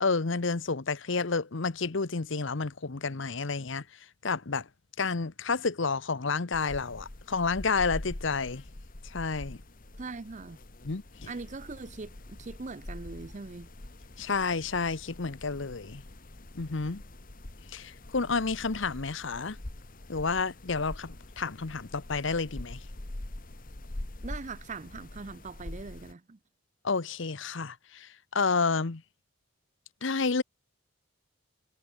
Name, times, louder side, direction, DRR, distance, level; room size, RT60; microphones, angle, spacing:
voice 1, 0.0-3.8 4.2-4.7 5.0-8.6 9.0-9.6 10.8-11.0 14.2-16.0 16.5-17.0 17.7-19.6 20.1-22.8 26.8-29.0 30.0-30.4, left 4 dB, 60° left, 0.9 m, -30 dB
sound 1, 6.5-26.1, left 1 dB, 40° left, 1.5 m, -44 dB
voice 2, 10.0-10.6 11.3-13.7 24.2-26.4, right 3 dB, 35° right, 0.6 m, -41 dB
head